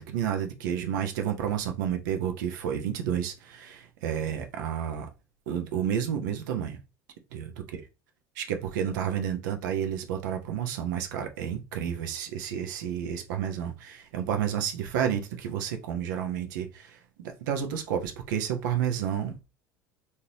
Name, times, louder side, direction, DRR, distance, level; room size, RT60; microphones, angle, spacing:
voice 1, 0.0-5.1 5.5-6.8 7.3-7.5 8.4-19.4, right 9 dB, 70° right, 0.7 m, -30 dB
3.7 x 2.7 x 2.9 m
hypercardioid pair, 75°, 10 cm